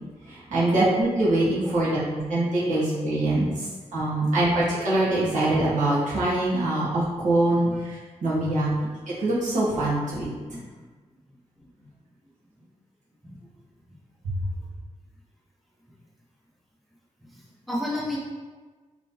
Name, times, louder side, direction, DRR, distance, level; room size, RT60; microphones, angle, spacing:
voice 1, 0.3-10.3 14.2-14.3, right 1 dB, 85° right, -8 dB, 1.3 m, -24 dB
voice 2, 3.1-3.6 4.0-4.1 7.6-7.7 8.4-8.5 10.5-10.6 13.2-13.4 17.3-17.4 17.7-18.2, left 1 dB, ahead, -6 dB, 0.7 m, -33 dB
3.7 x 3.3 x 2.7 m, 1.3 s
wide cardioid pair, 155°, 12 cm